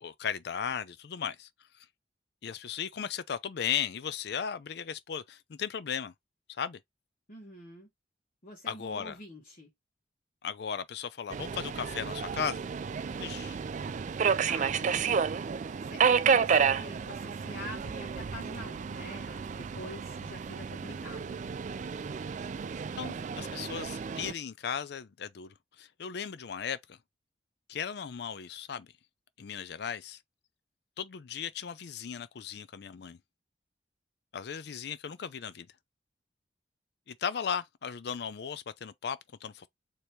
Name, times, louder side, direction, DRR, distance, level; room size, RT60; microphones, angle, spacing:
voice 1, 0.0-1.5 2.4-6.1 6.6-6.8 8.7-9.2 10.4-12.6 13.2-13.6 23.0-27.0 27.7-28.9 29.4-30.2 31.0-33.2 34.3-35.7 37.1-39.7, left 7 dB, 65° left, 0.4 m, -36 dB
voice 2, 7.3-7.9 8.4-9.7 14.4-15.2 15.8-21.4, left 1 dB, 45° left, 1.3 m, -46 dB
Subway metro underground, 11.3-24.3, right 6 dB, 45° right, 0.3 m, -31 dB
4.3 x 3.0 x 3.2 m
head